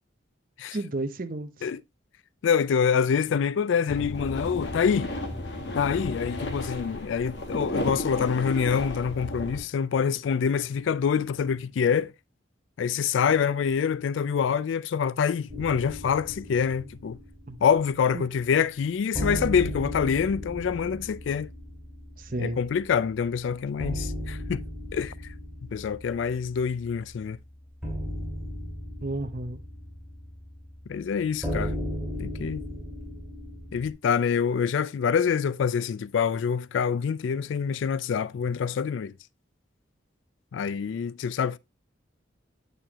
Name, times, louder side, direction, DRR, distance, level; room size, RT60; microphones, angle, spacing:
voice 1, 0.7-1.7 17.5-17.6 18.1-18.2 22.2-22.6 29.0-29.6, right 2 dB, 45° right, 0.8 m, -32 dB
voice 2, 2.4-5.1 5.8-12.1 12.8-17.2 17.6-21.5 22.4-24.6 24.9-25.1 25.7-27.4 30.9-31.8 32.2-32.6 33.7-39.1 40.5-41.6, left 7 dB, 80° left, 0.3 m, -26 dB
sound 1, 3.9-9.6, left 1 dB, 65° left, 1.5 m, -33 dB
sound 2, 15.5-18.3 18.6-18.7 19.1-33.9, equal, ahead, 2.9 m, -36 dB
8.8 x 6.7 x 2.9 m
head